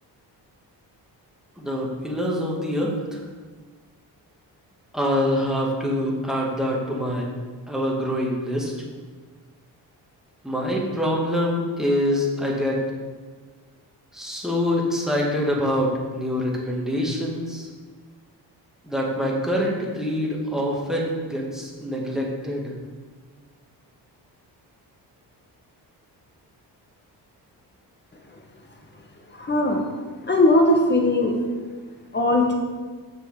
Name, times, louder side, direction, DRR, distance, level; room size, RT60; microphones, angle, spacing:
voice 1, 1.6-3.2 4.9-7.3 7.7-8.7 10.4-12.8 14.1-17.7 18.8-22.7, equal, ahead, -3 dB, 2.1 m, -25 dB
voice 2, 29.4-29.8 30.2-31.4 32.1-32.5, left 1 dB, 25° left, 2 dB, 1.6 m, -19 dB
6.6 x 6.5 x 4.9 m, 1.4 s
cardioid pair, 70°, 42 cm